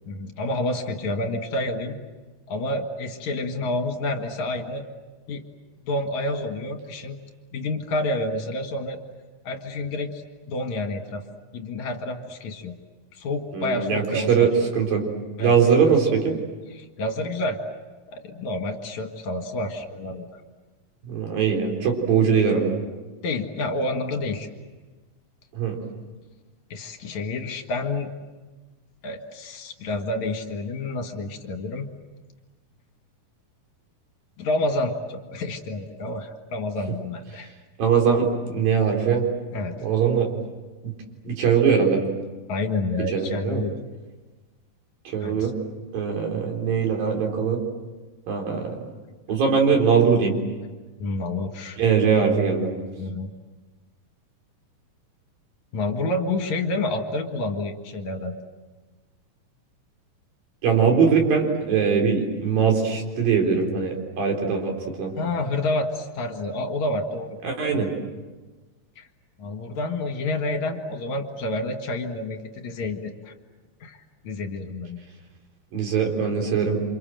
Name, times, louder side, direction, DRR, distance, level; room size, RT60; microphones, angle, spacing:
voice 1, 0.1-2.0 2.5-4.9 5.3-5.4 5.9-7.2 7.5-9.0 9.4-10.2 10.5-11.2 11.5-12.7 13.1-14.5 15.4-15.5 15.8-15.9 16.7-17.6 18.1-20.2 23.2-24.5 26.7-28.1 29.0-31.9 34.4-37.5 39.5-39.8 42.5-43.7 45.2-45.5 51.0-51.8 53.0-53.3 55.7-58.3 65.2-67.4 67.7-67.9 69.0-69.1 69.4-73.3 73.8-75.0, left 2 dB, 60° left, 4 dB, 3.0 m, -29 dB
voice 2, 13.5-15.0 15.4-16.3 21.0-22.7 25.5-25.8 37.8-39.2 39.8-40.3 40.8-40.9 41.3-42.0 43.1-43.6 45.1-45.5 45.9-47.6 48.3-48.9 49.3-50.4 51.8-52.7 60.6-65.1 67.4-67.9 75.7-76.8, right 6 dB, 90° right, 2 dB, 5.7 m, -21 dB
29.0 x 27.0 x 7.7 m, 1.3 s
omnidirectional pair, 3.9 m